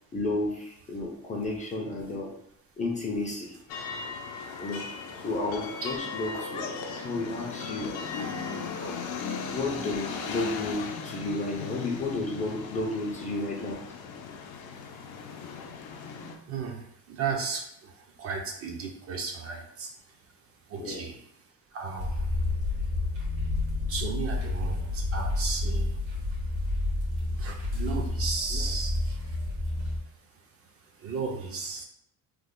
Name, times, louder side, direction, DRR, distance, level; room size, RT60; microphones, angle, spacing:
voice 1, 0.1-2.3 2.8-3.6 4.6-4.9 5.1-8.1 8.8-9.0 9.5-13.8 20.8-21.1 28.5-28.6, left 2 dB, 20° left, -2 dB, 0.4 m, -32 dB
sound 1, 3.7-16.4, left 5 dB, 90° left, 0.6 m, -37 dB
voice 2, 16.5-19.9 20.7-21.2 21.7-22.3 23.9-26.0 27.4-29.2 31.0-31.8, right 5 dB, 40° right, 2 dB, 0.4 m, -35 dB
sound 2, 22.0-30.0, left 2 dB, 85° right, 1.4 m, -30 dB
3.2 x 2.0 x 3.6 m, 0.72 s
cardioid pair, 160°, 37 cm